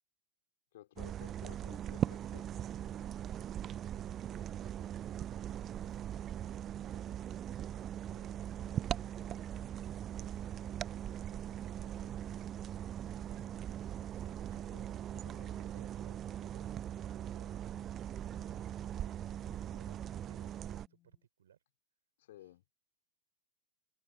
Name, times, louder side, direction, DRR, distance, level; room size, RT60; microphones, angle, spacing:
voice 1, 0.7-2.7 13.3-13.6 14.6-15.6 19.4-19.9 22.2-22.6, left 14 dB, 55° left, 4.4 m, -57 dB
sound 1, 1.0-20.9, right 10 dB, 30° right, 0.6 m, -40 dB
sound 2, 5.5-21.3, left 15 dB, 35° left, 4.2 m, -73 dB
voice 2, 8.1-9.5 9.8-12.5 12.9-15.2 15.6-19.4 19.7-21.6 22.4-22.5, right 9 dB, 65° right, 6.2 m, -65 dB
figure-of-eight pair, 90°, 0 cm